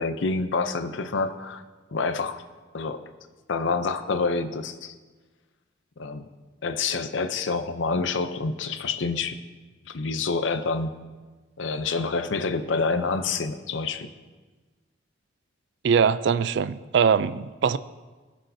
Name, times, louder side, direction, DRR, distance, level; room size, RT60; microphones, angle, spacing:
voice 1, 0.0-1.6 1.9-2.4 2.7-3.0 3.5-4.9 6.0-6.3 6.6-9.4 9.8-10.9 11.6-14.1, left 4 dB, 75° left, 10 dB, 0.6 m, -27 dB
voice 2, 15.8-17.8, right 6 dB, 60° right, 15 dB, 0.3 m, -22 dB
18.0 x 6.4 x 2.7 m, 1.3 s
head